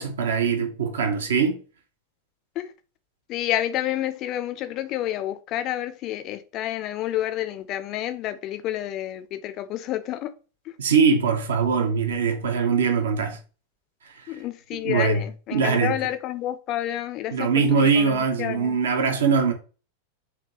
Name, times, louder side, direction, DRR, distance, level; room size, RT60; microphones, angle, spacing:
voice 1, 0.0-1.6 10.8-13.4 14.3-14.4 14.8-16.0 17.3-19.5, right 5 dB, 65° right, 0.7 m, -22 dB
voice 2, 3.3-10.3 14.3-17.5 17.8-18.8, left 13 dB, 35° left, 0.4 m, -29 dB
3.4 x 2.8 x 2.8 m
figure-of-eight pair, 90°, 0 cm